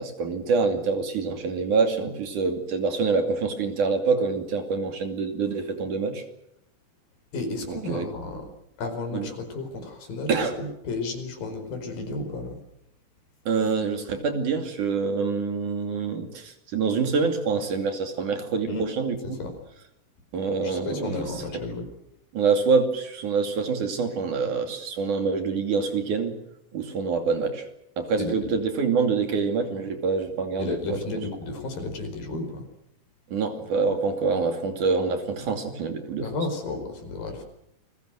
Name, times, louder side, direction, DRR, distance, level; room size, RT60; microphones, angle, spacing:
voice 1, 0.0-6.2 7.7-8.1 9.1-9.3 10.3-10.6 13.5-19.4 20.3-21.3 22.3-26.3 26.7-27.6 28.0-31.2 33.3-36.3, right 4 dB, 60° right, 6 dB, 4.0 m, -26 dB
voice 2, 7.3-8.5 8.8-12.5 18.7-18.9 19.2-19.5 20.6-21.9 28.2-28.5 30.6-32.6 36.2-37.4, left 2 dB, 75° left, 6 dB, 6.5 m, -32 dB
29.5 x 22.0 x 6.5 m, 0.78 s
omnidirectional pair, 4.1 m